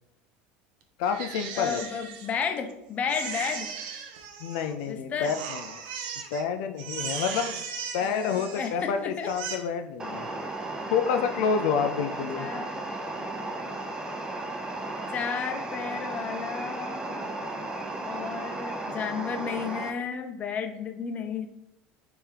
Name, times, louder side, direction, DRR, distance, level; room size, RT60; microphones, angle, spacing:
voice 1, 1.0-1.8 4.4-5.8 6.3-7.6 7.9-10.3 10.9-12.5, left 6 dB, 85° left, 7 dB, 0.4 m, -28 dB
Crying sobbing, 1.0-2.7 3.1-4.9 5.2-6.4 6.8-8.9 9.2-9.5, right 6 dB, 85° right, 0.7 m, -37 dB
voice 2, 1.6-3.7 4.9-5.3 8.0-9.3 12.4-12.9 13.6-13.7 15.1-17.3 18.0-21.5, left 6 dB, 30° left, 6 dB, 0.6 m, -33 dB
sound 1, 10.0-19.9, right 2 dB, 15° right, 0.6 m, -35 dB
3.5 x 3.4 x 4.4 m, 0.89 s
supercardioid pair, 130°, 5 cm